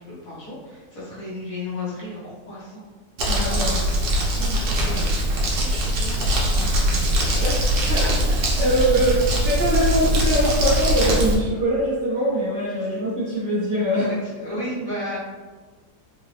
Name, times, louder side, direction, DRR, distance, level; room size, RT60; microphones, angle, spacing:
voice 1, 0.0-2.8 3.6-4.0 4.4-6.2 7.1-7.6 7.9-8.7 9.8-9.9 12.8-13.0 14.0-15.2, left 1 dB, 50° left, -9 dB, 1.5 m, -34 dB
Crumpling crinkling, 3.2-11.3, equal, 75° right, 1.4 m, -21 dB
voice 2, 3.3-3.8 6.5-7.2 7.9-8.0 8.6-9.2 9.4-14.1, equal, 50° right, -8 dB, 1.0 m, -23 dB
3.9 x 2.5 x 3.1 m, 1.4 s
omnidirectional pair, 1.9 m